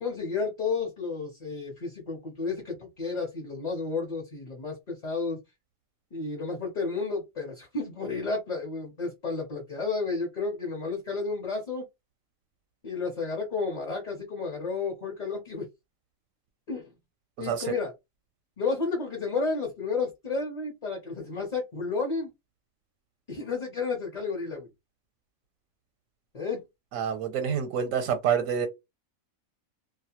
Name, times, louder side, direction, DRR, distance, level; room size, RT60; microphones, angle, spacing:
voice 1, 0.0-5.4 6.1-11.8 12.8-15.7 16.7-16.9 17.4-17.9 18.6-22.3 23.3-24.7 26.3-26.6, left 4 dB, 40° left, 0.7 m, -32 dB
voice 2, 17.4-17.7 26.9-28.7, right 8 dB, 85° right, 1.0 m, -27 dB
2.3 x 2.1 x 2.8 m
omnidirectional pair, 1.4 m